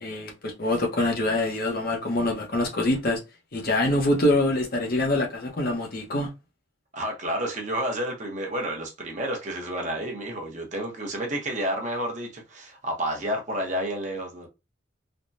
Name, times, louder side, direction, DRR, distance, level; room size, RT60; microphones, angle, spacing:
voice 1, 0.0-3.2 3.5-6.3, left 1 dB, 50° left, 0.8 m, -25 dB
voice 2, 6.9-14.5, right 1 dB, 35° right, 0.8 m, -30 dB
3.4 x 2.2 x 2.5 m
head